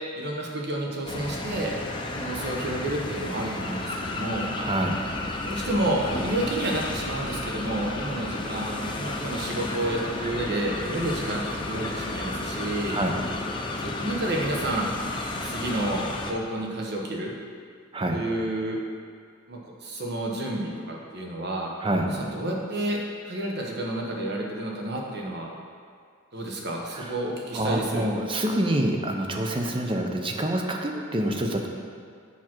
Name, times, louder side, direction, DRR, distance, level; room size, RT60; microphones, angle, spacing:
voice 1, 0.1-1.7 2.1-4.5 5.4-13.0 13.8-14.9 15.4-17.3 18.1-18.8 19.5-21.7 22.0-23.0 23.2-25.5 26.3-28.1, right 1 dB, 55° right, -1 dB, 1.1 m, -30 dB
sound 1, 1.1-16.3, left 2 dB, 25° left, 0.6 m, -32 dB
voice 2, 4.6-5.0 12.9-13.2 17.9-18.2 21.8-22.1 26.9-27.1 27.5-31.7, right 1 dB, 25° right, 2 dB, 0.6 m, -26 dB
7.1 x 6.0 x 4.5 m, 2.1 s
head